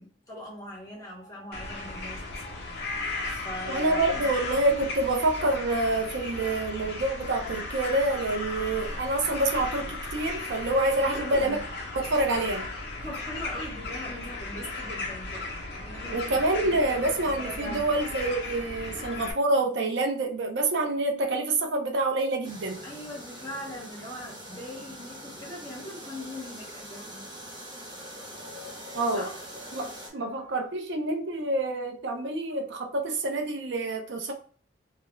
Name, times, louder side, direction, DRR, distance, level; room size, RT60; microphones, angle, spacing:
voice 1, 0.0-2.6 3.3-4.3 6.4-6.6 11.1-11.6 12.0-12.1 13.0-18.1 22.8-27.3 27.9-28.1 28.5-28.8 29.1-29.4 30.1-30.2, left 1 dB, 15° left, -4 dB, 0.9 m, -41 dB
sound 1, 1.5-19.3, left 2 dB, 55° left, 0.6 m, -36 dB
voice 2, 3.6-11.6 11.9-12.7 16.1-22.8 28.9-29.3 29.7-34.3, right 2 dB, 70° right, 3 dB, 0.5 m, -27 dB
sound 2, 22.4-30.1, equal, 25° right, 0.7 m, -43 dB
2.3 x 2.0 x 2.9 m, 0.42 s
head